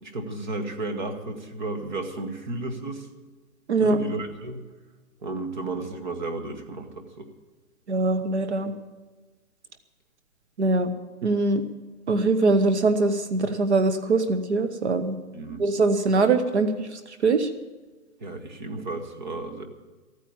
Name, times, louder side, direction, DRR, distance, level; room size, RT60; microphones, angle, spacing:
voice 1, 0.0-3.1 3.8-4.6 5.2-7.3 15.3-15.6 18.2-19.7, right 2 dB, 30° right, 5 dB, 1.4 m, -33 dB
voice 2, 7.9-8.7 10.6-10.9 11.2-11.6 12.1-15.2 15.6-17.5, right 3 dB, 50° right, 9 dB, 1.1 m, -22 dB
14.0 x 9.5 x 8.7 m, 1.3 s
hypercardioid pair, 175°, 44 cm